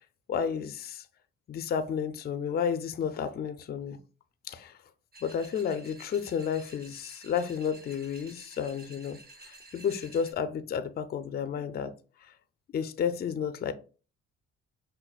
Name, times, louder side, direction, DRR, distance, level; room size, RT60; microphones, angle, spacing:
voice 1, 0.3-1.1 1.5-4.0 4.4-4.8 5.2-11.9 12.2-12.3 12.7-13.7, left 7 dB, 35° left, 0.4 m, -32 dB
sound 1, 5.1-10.3, right 2 dB, 30° right, 1.0 m, -52 dB
5.4 x 2.2 x 2.3 m
cardioid pair, 90°, 30 cm